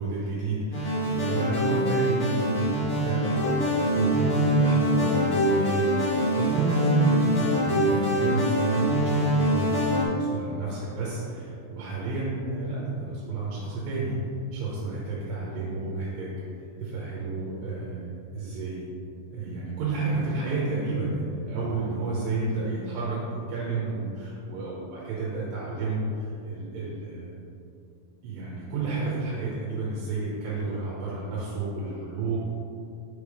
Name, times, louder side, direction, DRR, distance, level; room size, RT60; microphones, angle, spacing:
voice 1, 0.0-14.1 14.5-16.4 16.8-18.9 19.3-27.5 28.2-32.4, right 3 dB, 80° right, -6 dB, 3.1 m, -31 dB
sound 1, 0.7-10.0, equal, 55° left, 1.5 m, -24 dB
7.0 x 3.6 x 4.9 m, 2.6 s
omnidirectional pair, 4.9 m